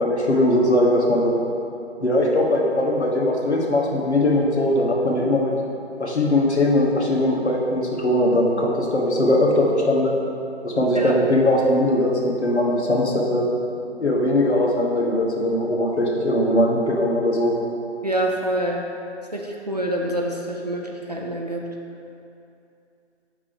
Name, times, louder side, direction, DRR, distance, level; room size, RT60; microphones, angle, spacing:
voice 1, 0.0-1.4 2.0-5.5 6.0-10.1 10.6-13.5 14.0-17.5, left 1 dB, 70° left, -2 dB, 1.2 m, -20 dB
voice 2, 18.0-18.9 19.3-21.7, right 1 dB, 35° right, -1 dB, 0.4 m, -26 dB
5.5 x 3.6 x 5.0 m, 2.6 s
figure-of-eight pair, 150°, 35 cm